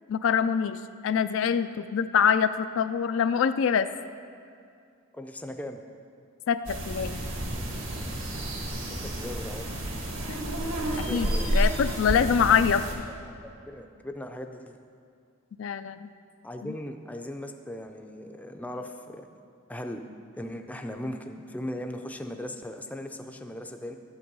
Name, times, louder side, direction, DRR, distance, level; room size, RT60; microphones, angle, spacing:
voice 1, 0.1-3.9 6.5-7.2 10.3-10.4 11.0-12.9 15.6-16.1 16.6-16.7, left 7 dB, 65° left, 11 dB, 0.3 m, -25 dB
voice 2, 5.1-5.8 9.0-9.7 10.9-11.5 13.7-14.8 16.4-19.2 19.7-20.0 20.3-24.0, left 1 dB, 5° left, 5 dB, 0.5 m, -38 dB
sound 1, 6.6-12.9, right 1 dB, 65° right, 1.7 m, -30 dB
11.5 x 7.9 x 5.4 m, 2.4 s
head